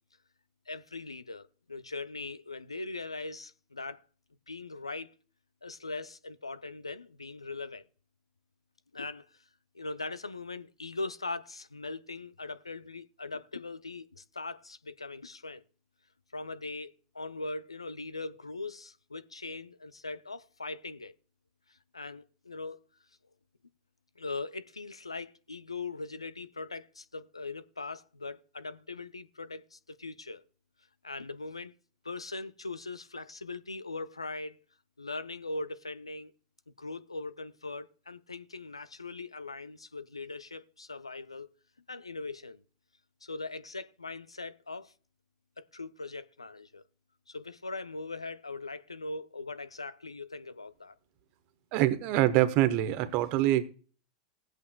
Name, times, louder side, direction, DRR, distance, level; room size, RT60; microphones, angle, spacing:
voice 1, 0.7-4.0 4.5-5.1 5.6-7.8 8.9-9.4 9.7-15.6 16.3-21.1 21.7-22.8 24.2-30.4 31.0-31.7 32.0-34.6 35.0-36.3 36.8-41.5 41.9-42.6 43.2-44.9 45.6-46.8 47.3-50.9, left 3 dB, 90° left, 0.4 m, -40 dB
voice 2, 51.7-53.6, right 14 dB, 50° right, 0.9 m, -25 dB
19.5 x 8.1 x 2.2 m
figure-of-eight pair, 90°, 3 cm